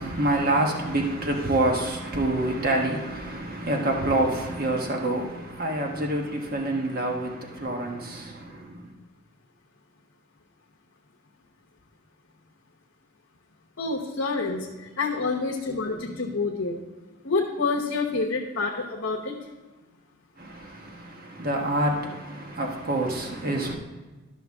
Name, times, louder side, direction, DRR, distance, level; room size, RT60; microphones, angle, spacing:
voice 1, 0.0-8.9 20.4-23.8, right 1 dB, 45° right, 1.2 m, -27 dB
voice 2, 13.8-14.7 15.0-16.8 17.2-19.3, left 3 dB, 70° left, 1.0 m, -27 dB
12.5 x 6.0 x 3.6 m
head